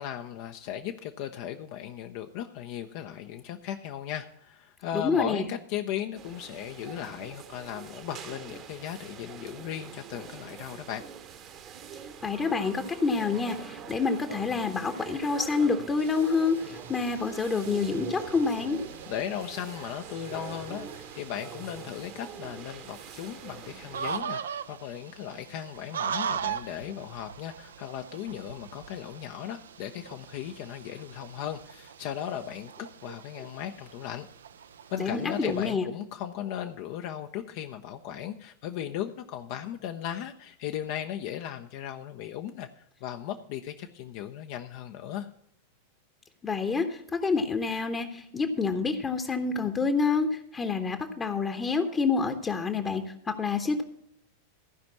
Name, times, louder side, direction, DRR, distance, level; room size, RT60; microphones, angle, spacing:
voice 1, 0.0-11.0 19.1-32.7 33.0-34.3 34.9-42.7 43.0-45.3, left 10 dB, 45° left, 6 dB, 0.6 m, -37 dB
voice 2, 4.9-5.4 12.2-18.8 35.0-35.9 46.4-53.8, left 4 dB, 20° left, 6 dB, 0.9 m, -28 dB
sound 1, 6.1-24.2, right 8 dB, 35° right, 1.0 m, -44 dB
sound 2, 16.0-35.7, right 7 dB, 65° right, 0.5 m, -41 dB
15.0 x 5.2 x 7.1 m, 0.73 s
figure-of-eight pair, 90°, 0 cm